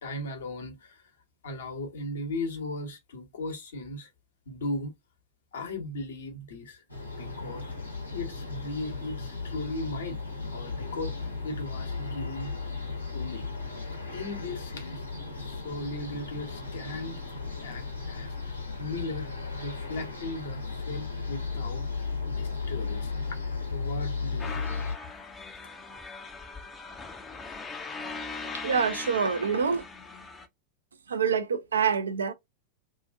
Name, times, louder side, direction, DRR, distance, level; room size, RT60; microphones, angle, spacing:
voice 1, 0.0-1.1 1.4-4.1 4.5-4.9 5.5-6.8 7.2-7.8 8.1-10.2 10.5-12.5 13.1-13.5 14.1-17.2 17.6-18.4 18.8-23.2 23.7-24.7, left 2 dB, 65° left, 1.0 m, -37 dB
sound 1, 6.9-25.0, left 4 dB, 85° left, 1.0 m, -35 dB
sound 2, 24.4-30.5, left 4 dB, 15° left, 0.5 m, -40 dB
voice 2, 28.6-29.8 31.1-32.3, right 6 dB, 70° right, 0.5 m, -26 dB
2.7 x 2.5 x 2.3 m
figure-of-eight pair, 90°, 0 cm